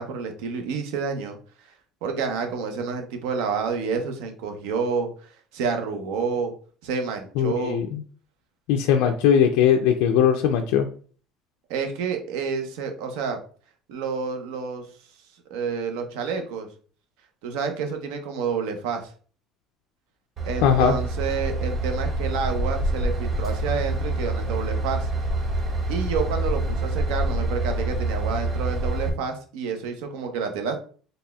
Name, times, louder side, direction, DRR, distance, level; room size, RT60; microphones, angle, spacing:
voice 1, 0.0-1.4 2.0-5.1 5.5-6.5 6.8-7.8 11.7-13.4 13.9-14.8 15.5-16.7 17.4-19.1 20.4-25.1 25.9-30.8, right 5 dB, 90° right, 5 dB, 0.7 m, -29 dB
voice 2, 7.4-8.0 8.7-10.9 20.6-20.9, left 8 dB, 85° left, 3 dB, 0.4 m, -19 dB
Train / Engine, 20.4-29.1, right 1 dB, 25° right, 0.6 m, -26 dB
4.1 x 3.3 x 2.3 m, 0.42 s
cardioid pair, 160°, 0 cm